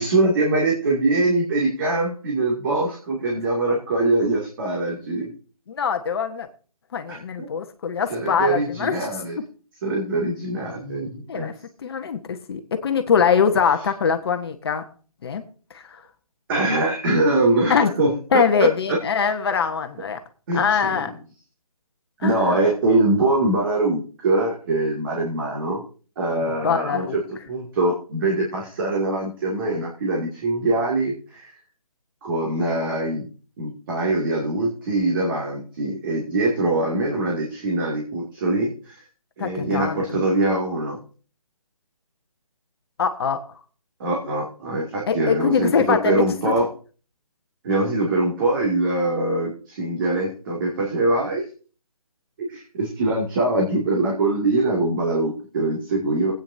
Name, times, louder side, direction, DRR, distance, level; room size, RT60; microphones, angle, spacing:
voice 1, 0.0-5.3 7.1-7.5 8.1-9.4 9.8-11.5 16.5-19.0 20.5-21.0 22.2-25.8 26.2-27.2 27.5-31.5 32.2-33.3 33.6-39.0 39.4-41.0 44.0-46.7 47.6-51.5 52.4-56.3, right 2 dB, 35° right, -3 dB, 2.3 m, -23 dB
voice 2, 5.7-6.5 6.9-9.1 11.3-11.5 11.8-14.8 15.2-15.4 15.7-16.0 17.7-17.9 18.3-20.2 20.5-21.1 22.2-22.6 26.6-27.1 39.4-40.2 43.0-43.4 45.1-46.5, left 6 dB, 45° left, 7 dB, 1.1 m, -23 dB
20.5 x 9.0 x 2.7 m, 0.39 s
hypercardioid pair, 155°, 19 cm